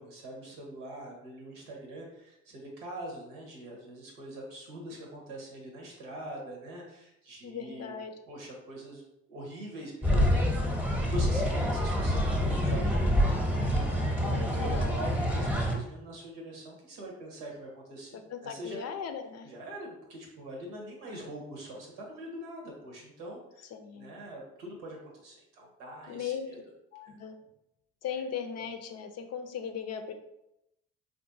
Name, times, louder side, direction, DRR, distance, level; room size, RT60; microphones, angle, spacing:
voice 1, 0.0-7.9 8.3-9.0 9.3-10.7 11.0-18.8 19.4-23.7 23.9-26.6 27.1-27.2 28.1-28.2, right 1 dB, 80° right, -1 dB, 1.0 m, -43 dB
voice 2, 7.4-8.1 14.2-15.1 18.1-19.5 23.7-24.1 26.1-26.5 26.9-27.4 28.0-30.1, left 7 dB, 45° left, 6 dB, 0.5 m, -38 dB
sound 1, 10.0-15.8, equal, 5° right, 0.9 m, -27 dB
3.7 x 2.5 x 2.5 m, 0.84 s
hypercardioid pair, 55°, 35 cm